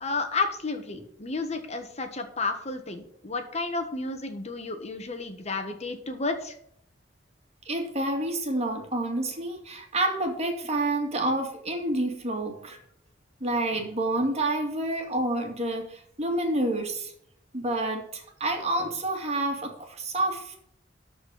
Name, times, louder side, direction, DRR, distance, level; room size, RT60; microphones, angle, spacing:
voice 1, 0.0-6.5, left 3 dB, 40° left, 6 dB, 1.4 m, -32 dB
voice 2, 7.7-12.8 13.4-17.1 17.5-20.6, right 1 dB, 40° right, 3 dB, 2.4 m, -28 dB
13.0 x 4.5 x 7.6 m, 0.69 s
head